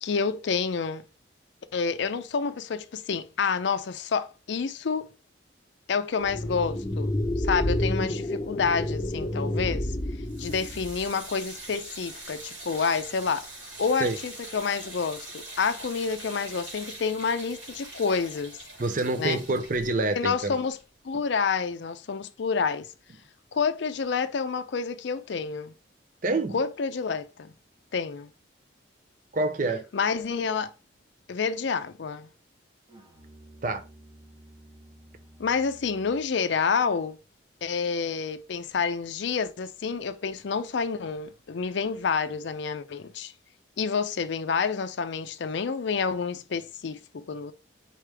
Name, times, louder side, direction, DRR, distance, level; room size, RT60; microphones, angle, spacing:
voice 1, 0.0-1.0 1.7-5.1 5.9-10.0 10.4-13.5 13.8-18.6 19.2-19.4 20.1-20.8 21.0-22.9 23.5-25.7 26.5-27.5 27.9-28.3 29.9-30.7 31.3-32.3 35.4-37.2 37.6-43.3 43.8-47.5, left 5 dB, 65° left, 0.4 m, -28 dB
sound 1, 6.2-11.1, left 1 dB, 20° left, 0.6 m, -29 dB
sound 2, 10.3-21.4, right 2 dB, 85° right, 2.4 m, -43 dB
voice 2, 18.8-20.6 26.2-26.6 29.3-29.9 33.6-33.8, right 2 dB, 45° right, 0.5 m, -27 dB
Musical instrument, 32.9-36.4, equal, 25° right, 0.9 m, -52 dB
4.5 x 3.3 x 3.3 m
head